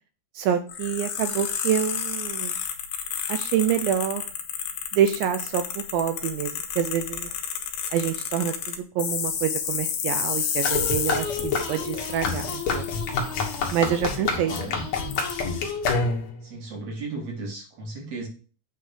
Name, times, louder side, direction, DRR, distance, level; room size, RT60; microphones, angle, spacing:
voice 1, 0.4-2.6 3.3-4.2 4.9-7.3 7.9-12.9 13.7-14.5, right 9 dB, 80° right, 9 dB, 2.1 m, -27 dB
sound 1, 0.7-14.1 14.6-14.7 15.1-15.3, left 8 dB, 80° left, 3.0 m, -31 dB
sound 2, 10.6-16.4, left 4 dB, 60° left, 2.1 m, -28 dB
voice 2, 14.4-14.8 16.4-18.3, right 3 dB, 55° right, 1 dB, 2.1 m, -35 dB
8.4 x 3.7 x 6.4 m, 0.38 s
omnidirectional pair, 4.5 m